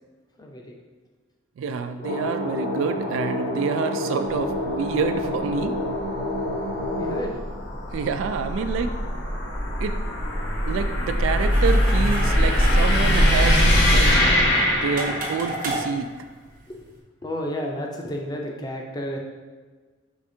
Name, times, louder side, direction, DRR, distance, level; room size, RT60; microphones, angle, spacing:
voice 1, 0.4-0.8 7.0-7.4 16.7-16.8 17.2-19.2, equal, 20° left, 1 dB, 0.5 m, -31 dB
voice 2, 1.6-5.7 7.9-9.0 9.8-10.0 10.7-14.2 14.6-16.1, right 5 dB, 80° right, 9 dB, 0.3 m, -27 dB
sound 1, 2.0-7.3, left 1 dB, 75° left, 1.1 m, -28 dB
sound 2, 4.3-15.6, equal, 60° left, 0.9 m, -22 dB
sound 3, 11.4-17.0, right 1 dB, 45° right, 0.7 m, -34 dB
4.9 x 3.3 x 2.7 m, 1.4 s
head